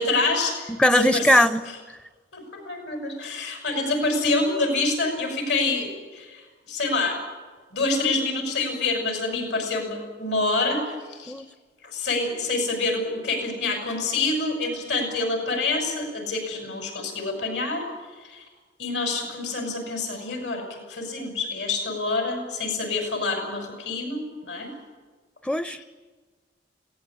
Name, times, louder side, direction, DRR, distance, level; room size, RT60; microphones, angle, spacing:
voice 1, 0.0-1.3 2.3-7.2 7.7-11.3 11.8-17.8 18.2-18.4 18.8-24.7 25.8-25.9, left 3 dB, 75° left, 4 dB, 6.2 m, -27 dB
voice 2, 0.7-1.6 11.3-11.5 25.4-25.8, left 1 dB, 5° left, 13 dB, 0.6 m, -20 dB
21.5 x 18.0 x 8.7 m, 1.4 s
head